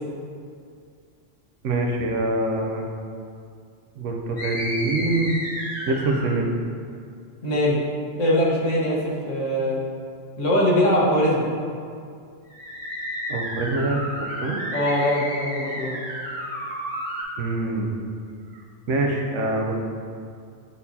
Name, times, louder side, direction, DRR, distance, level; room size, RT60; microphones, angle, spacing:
voice 1, 1.6-2.9 4.0-5.4 5.9-6.5 13.3-14.6 17.4-18.1 18.5-18.6 18.9-19.8, right 2 dB, 85° right, 1 dB, 1.1 m, -25 dB
sound 1, 4.4-6.4 12.5-17.2, equal, 20° left, 1.6 m, -32 dB
voice 2, 7.4-7.8 8.2-9.8 10.4-11.5 14.7-16.0, equal, 85° left, -6 dB, 1.6 m, -21 dB
9.7 x 4.3 x 2.8 m, 2.3 s
omnidirectional pair, 1.2 m